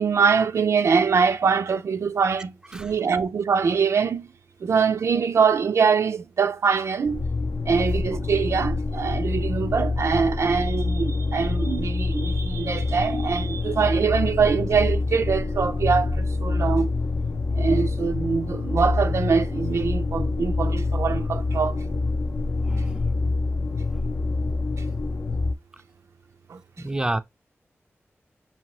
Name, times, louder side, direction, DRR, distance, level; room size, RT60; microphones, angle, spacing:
voice 1, 0.0-4.3 4.6-7.2 7.7-16.9 17.5-21.8 26.5-26.6, right 5 dB, 85° right, 0.4 m, -23 dB
sound 1, 7.0-25.5, left 3 dB, 55° left, 0.5 m, -26 dB
voice 2, 22.6-23.2 24.4-24.5 26.8-27.2, right 1 dB, 15° right, 0.4 m, -30 dB
5.2 x 2.9 x 2.9 m
wide cardioid pair, 85°, 5 cm